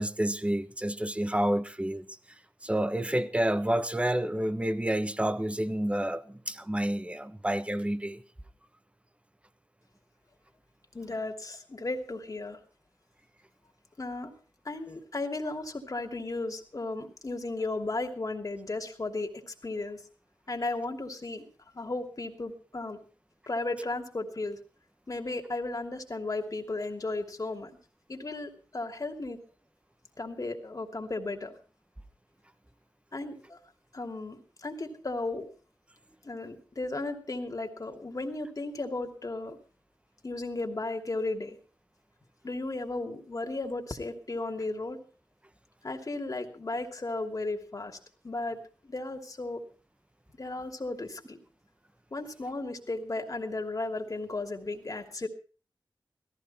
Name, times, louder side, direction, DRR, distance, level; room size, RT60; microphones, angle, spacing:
voice 1, 0.0-2.1 2.6-8.2, right 1 dB, 15° right, 1.2 m, -29 dB
voice 2, 10.9-12.6 14.0-14.3 14.6-20.0 20.5-21.5 21.7-23.0 23.5-24.6 25.1-27.7 28.1-29.4 30.2-31.5 33.1-33.6 33.9-35.5 36.2-39.6 40.2-41.6 42.4-45.0 45.8-48.0 48.2-48.6 48.8-49.6 50.4-51.4 52.1-55.3, left 2 dB, 45° left, 2.9 m, -35 dB
17.5 x 14.5 x 4.3 m
wide cardioid pair, 70°, 8 cm